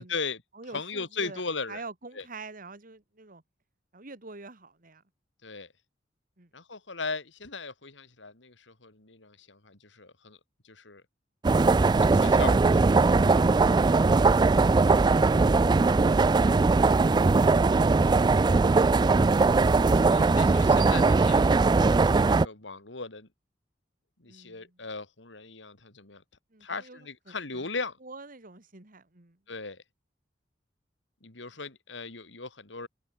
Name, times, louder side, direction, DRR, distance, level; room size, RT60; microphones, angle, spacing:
voice 1, 0.0-0.4 0.7-1.8 2.1-2.2 5.4-5.7 6.5-10.4 10.6-11.0 11.9-12.9 13.9-14.1 19.6-23.3 24.2-26.2 26.6-28.0 29.5-29.8 31.2-32.9, left 4 dB, 80° left, 3.2 m, -38 dB
voice 2, 0.5-1.4 1.7-3.4 3.9-5.0 6.4-6.5 24.3-24.8 26.5-27.7 28.0-29.4, right 3 dB, 50° right, 2.2 m, -47 dB
sound 1, 11.4-22.5, right 3 dB, 25° right, 0.3 m, -20 dB
head